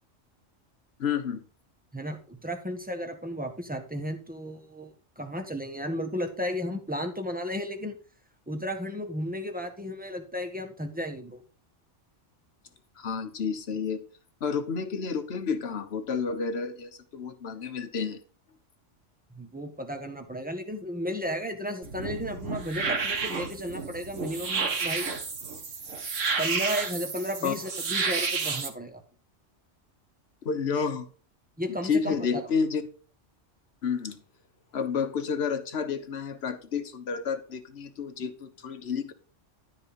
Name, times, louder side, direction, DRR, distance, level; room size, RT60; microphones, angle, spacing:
voice 1, 1.0-1.4 13.0-14.0 14.4-18.2 26.2-26.4 27.4-27.5 30.4-31.1 31.8-32.8 33.8-34.2 34.7-39.1, left 6 dB, 60° left, 9 dB, 1.4 m, -30 dB
voice 2, 1.9-8.0 8.5-11.4 19.3-25.2 26.4-29.0 31.6-32.4, equal, 5° right, 5 dB, 1.5 m, -34 dB
sound 1, 21.8-28.7, right 5 dB, 80° right, 1.9 m, -31 dB
12.5 x 4.8 x 5.3 m, 0.39 s
omnidirectional pair, 1.3 m